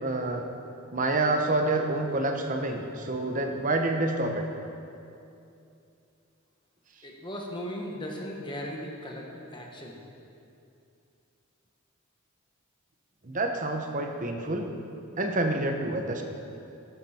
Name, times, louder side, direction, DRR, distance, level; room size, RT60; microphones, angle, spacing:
voice 1, 0.0-0.4 0.9-4.4 13.2-14.7 15.2-16.2, right 2 dB, 40° right, 4 dB, 1.1 m, -28 dB
voice 2, 7.0-10.0, equal, 20° left, -1 dB, 1.5 m, -37 dB
12.5 x 12.0 x 4.5 m, 2.7 s
head